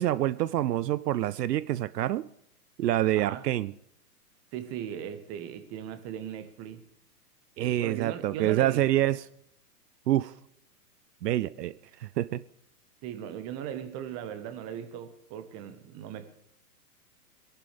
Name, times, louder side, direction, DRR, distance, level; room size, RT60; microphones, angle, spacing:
voice 1, 0.0-2.3 2.8-3.7 7.6-9.2 10.1-10.3 11.2-11.7 12.0-12.4, right 13 dB, 80° right, 17 dB, 0.5 m, -26 dB
voice 2, 3.1-3.5 4.5-6.8 7.6-9.0 13.0-16.3, right 9 dB, 30° right, 10 dB, 1.3 m, -38 dB
21.5 x 11.0 x 3.4 m, 0.74 s
hypercardioid pair, 125°, 48 cm